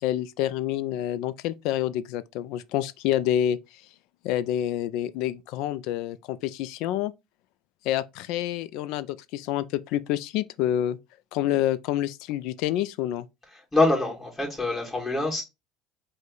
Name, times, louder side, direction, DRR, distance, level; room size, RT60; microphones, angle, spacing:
voice 1, 0.0-3.6 4.2-7.1 7.8-11.0 11.3-13.3, left 12 dB, 70° left, 0.3 m, -28 dB
voice 2, 13.7-15.4, left 2 dB, 15° left, 2.2 m, -24 dB
5.2 x 2.1 x 3.8 m
hypercardioid pair, 80°, 0 cm